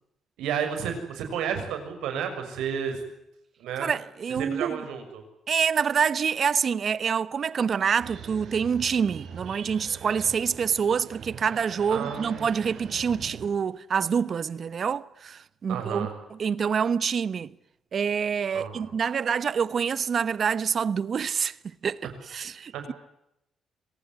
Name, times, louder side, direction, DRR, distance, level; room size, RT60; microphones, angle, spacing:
voice 1, 0.4-3.0 3.6-3.9 4.4-5.2 11.9-12.5 15.7-16.1 18.5-18.9 22.7-22.8, right 7 dB, 85° right, 6.5 m, -31 dB
voice 2, 3.8-4.8 5.5-17.5 17.9-22.9, right 6 dB, 50° right, 1.0 m, -27 dB
sound 1, 8.0-13.5, right 7 dB, 70° right, 6.1 m, -43 dB
26.0 x 19.0 x 9.8 m
cardioid pair, 90°, 0 cm